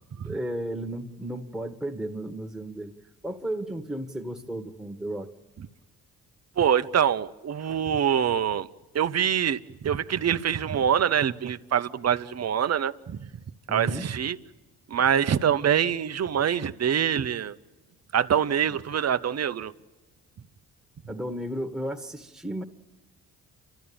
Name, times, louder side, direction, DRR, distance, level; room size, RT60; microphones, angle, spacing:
voice 1, 0.2-2.9 3.2-5.3 13.7-14.1 18.7-18.8 21.1-22.6, right 1 dB, ahead, 1.8 m, -34 dB
voice 2, 6.6-8.7 8.9-13.3 13.7-14.4 14.9-17.6 18.1-19.7, right 8 dB, 45° right, 0.9 m, -25 dB
30.0 x 13.0 x 8.8 m
supercardioid pair, 65°, 36 cm